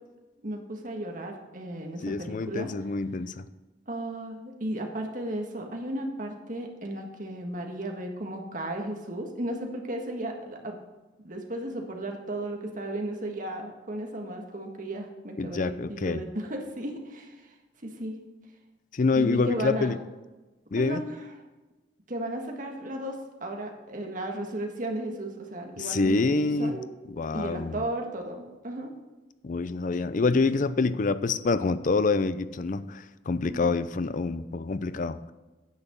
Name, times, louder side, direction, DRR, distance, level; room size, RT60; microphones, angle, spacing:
voice 1, 0.4-2.7 3.9-10.8 11.2-17.5 17.8-18.2 19.1-19.9 20.8-21.1 22.1-26.9 27.3-28.9 33.5-33.8, right 1 dB, 45° right, 2 dB, 1.6 m, -35 dB
voice 2, 2.0-3.5 15.4-16.2 18.9-20.0 20.7-21.0 25.8-26.7 27.1-27.8 29.4-35.3, left 3 dB, 45° left, 14 dB, 0.5 m, -26 dB
9.6 x 6.1 x 6.8 m, 1.1 s
head